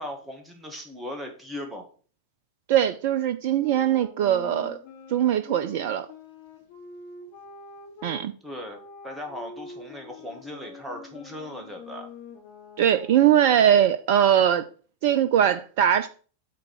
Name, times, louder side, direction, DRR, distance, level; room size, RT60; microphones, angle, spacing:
voice 1, 0.0-1.9 8.4-12.1, left 1 dB, 10° right, 1.9 m, -38 dB
voice 2, 2.7-4.8 5.1-6.1 8.0-8.3 12.8-14.6 15.0-16.1, right 10 dB, 50° right, 0.4 m, -21 dB
sound 1, 3.5-8.2 8.7-13.7, left 4 dB, 45° left, 2.2 m, -45 dB
8.4 x 3.7 x 6.3 m
figure-of-eight pair, 90°, 0 cm